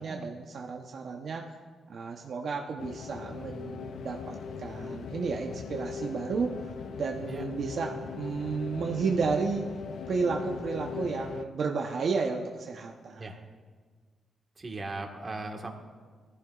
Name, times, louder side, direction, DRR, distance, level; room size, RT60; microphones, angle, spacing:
voice 1, 0.0-1.5 1.9-6.6 7.0-9.7 10.1-13.3, right 4 dB, 60° right, 1 dB, 0.8 m, -32 dB
sound 1, 2.8-11.5, left 5 dB, 70° left, 0.5 m, -39 dB
voice 2, 14.6-15.7, right 2 dB, 30° right, 2 dB, 1.5 m, -38 dB
19.5 x 14.5 x 2.4 m, 1.5 s
cardioid pair, 105°, 0 cm